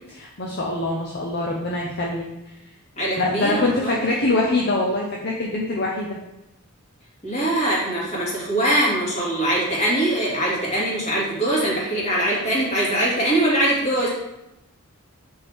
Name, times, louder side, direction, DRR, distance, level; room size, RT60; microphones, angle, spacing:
voice 1, 0.1-2.3 3.2-6.2, left 2 dB, 50° left, -2 dB, 0.8 m, -24 dB
voice 2, 3.0-4.0 7.2-14.1, right 1 dB, 30° left, -5 dB, 2.4 m, -22 dB
6.5 x 5.6 x 3.6 m, 0.90 s
head